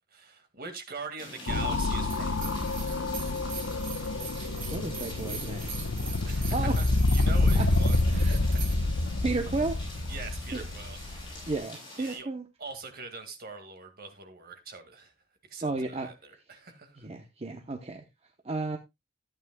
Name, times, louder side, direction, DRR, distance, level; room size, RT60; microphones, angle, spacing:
voice 1, 0.1-2.7 6.3-8.8 10.1-11.5 12.0-12.3 12.6-15.1 15.4-17.1, right 4 dB, 50° right, 2.0 m, -43 dB
sound 1, 1.2-12.2, left 1 dB, 25° left, 6.8 m, -46 dB
sound 2, 1.5-11.6, left 2 dB, 80° left, 1.0 m, -28 dB
sound 3, 2.1-8.8, right 6 dB, 70° right, 2.2 m, -42 dB
voice 2, 4.7-5.7 6.5-6.8 7.6-7.7 8.1-8.4 9.2-9.8 10.5-10.6 11.5-12.4 15.6-16.1 17.0-18.0 18.4-18.8, right 3 dB, 30° right, 0.9 m, -33 dB
14.0 x 8.9 x 2.3 m
head